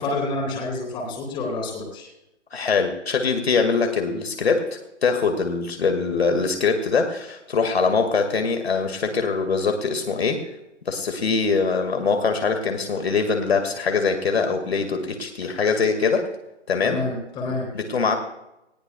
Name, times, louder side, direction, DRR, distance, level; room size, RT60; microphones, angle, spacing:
voice 1, 0.0-2.1 16.8-17.7, left 2 dB, 15° left, 1 dB, 3.2 m, -28 dB
voice 2, 2.5-4.7 5.0-10.4 10.9-16.3 16.7-17.0 17.7-18.2, left 5 dB, 60° left, 5 dB, 2.1 m, -23 dB
19.5 x 16.0 x 2.3 m, 0.91 s
figure-of-eight pair, 145°, 36 cm